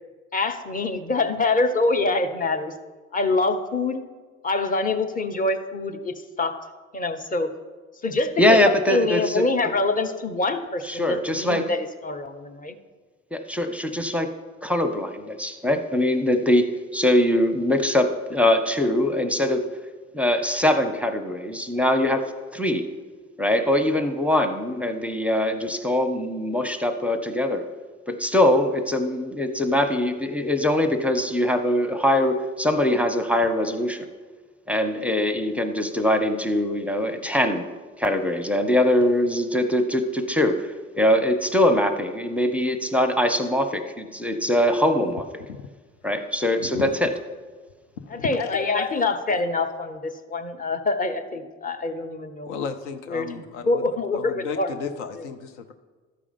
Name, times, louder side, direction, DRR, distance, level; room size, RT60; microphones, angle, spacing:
voice 1, 0.3-2.7 3.1-4.0 4.4-6.6 6.9-7.5 8.0-12.7 48.1-52.5 53.1-54.7, left 3 dB, 25° left, 6 dB, 0.9 m, -25 dB
voice 2, 8.4-9.4 10.9-11.6 13.3-14.3 14.6-19.7 20.1-22.8 23.4-27.6 28.1-34.0 34.7-37.7 38.0-40.7 41.0-45.2 46.0-47.1, left 1 dB, 5° right, 7 dB, 0.8 m, -22 dB
voice 3, 48.0-49.4 52.5-53.9 54.1-55.7, left 5 dB, 75° left, 8 dB, 0.6 m, -33 dB
13.0 x 4.9 x 5.3 m, 1.4 s
figure-of-eight pair, 50°, 36 cm